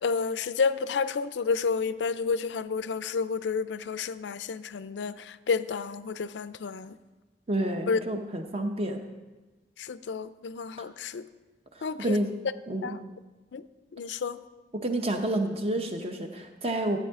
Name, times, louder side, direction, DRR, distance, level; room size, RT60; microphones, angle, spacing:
voice 1, 0.0-7.0 7.9-8.0 9.8-11.3 11.8-12.2 12.8-13.0 13.5-13.6 13.9-14.4, left 5 dB, 85° left, 0.4 m, -30 dB
voice 2, 7.5-9.0 11.7-12.3 12.7-13.0 14.7-17.0, right 1 dB, 35° right, 0.9 m, -29 dB
13.5 x 8.8 x 3.6 m
head